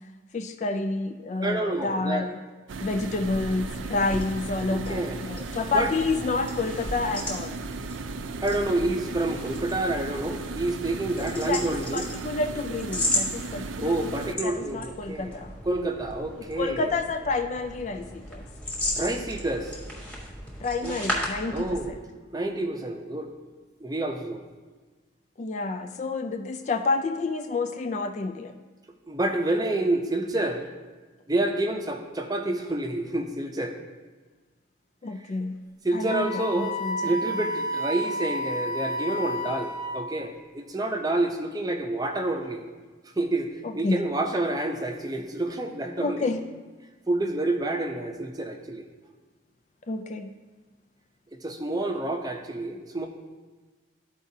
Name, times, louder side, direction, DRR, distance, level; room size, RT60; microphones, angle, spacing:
voice 1, 0.3-2.4 2.8-7.6 11.2-15.6 16.6-18.5 20.6-22.0 25.4-28.5 35.0-35.6 35.9-37.1 43.6-44.0 46.0-46.4 49.9-50.3, left 3 dB, 40° left, 7 dB, 0.3 m, -29 dB
voice 2, 1.4-2.3 4.7-5.2 5.7-5.9 8.4-12.1 13.8-15.3 15.6-16.9 19.0-19.7 20.8-21.0 21.5-21.9 22.3-23.3 23.8-24.4 29.1-30.7 31.3-33.7 35.8-36.8 37.0-42.6 43.2-43.5 43.7-46.3 47.1-48.8 51.4-53.1, right 2 dB, 20° right, 4 dB, 0.6 m, -28 dB
sound 1, 2.7-14.4, right 3 dB, 85° right, 0.4 m, -36 dB
sound 2, 3.2-22.0, left 1 dB, 5° left, 1.2 m, -36 dB
Wind instrument woodwind instrument, 36.0-40.2, equal, 65° left, 1.3 m, -31 dB
13.0 x 4.7 x 2.7 m, 1.3 s
head